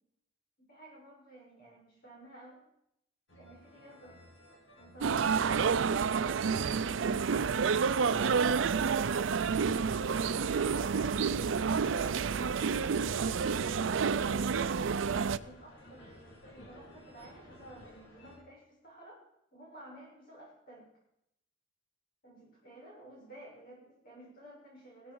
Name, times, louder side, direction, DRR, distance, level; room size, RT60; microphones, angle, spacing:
voice 1, 0.6-2.6 3.4-4.2 12.7-19.2 19.5-20.9 22.2-25.1, right 1 dB, 50° left, -3 dB, 7.1 m, -53 dB
sound 1, 3.3-18.4, left 1 dB, 70° left, 3.9 m, -54 dB
sound 2, 5.0-15.4, right 6 dB, 85° right, 0.5 m, -29 dB
16.5 x 13.5 x 4.7 m, 0.80 s
head